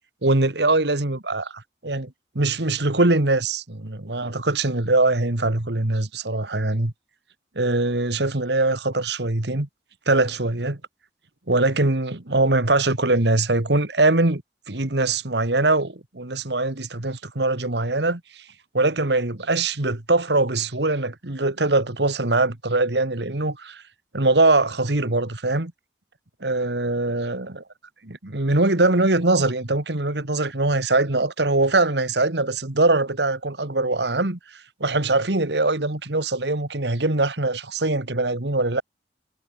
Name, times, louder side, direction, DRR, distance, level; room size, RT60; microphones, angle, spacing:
voice 1, 0.2-6.9 7.6-9.7 10.1-10.8 11.5-14.4 14.7-18.2 18.7-23.8 24.1-25.7 26.4-27.6 28.0-34.4 34.8-38.8, right 2 dB, 70° right, 2.0 m, -22 dB
head